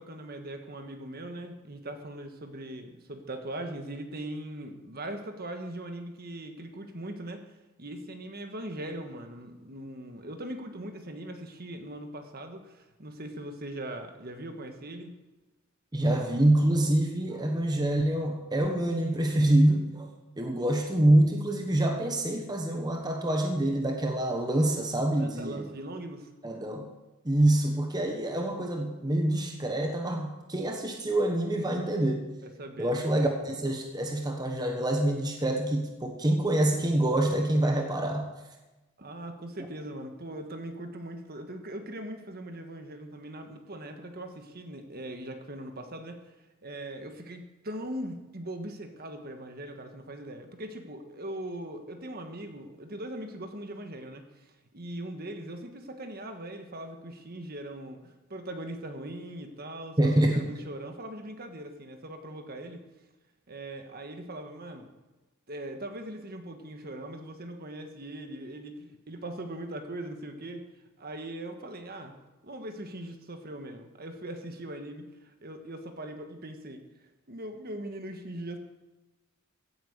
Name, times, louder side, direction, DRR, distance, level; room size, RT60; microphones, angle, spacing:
voice 1, 0.0-15.2 25.2-26.3 32.4-33.0 39.0-46.3 46.6-62.8 63.5-64.9 65.5-70.6 71.0-72.1 72.4-76.8 77.3-78.6, right 1 dB, 45° right, 6 dB, 1.4 m, -40 dB
voice 2, 15.9-20.1 20.4-25.6 26.4-26.9 27.2-32.3 32.8-38.3 60.0-60.4, right 1 dB, 20° right, 3 dB, 1.2 m, -26 dB
16.0 x 8.7 x 6.7 m, 1.1 s
head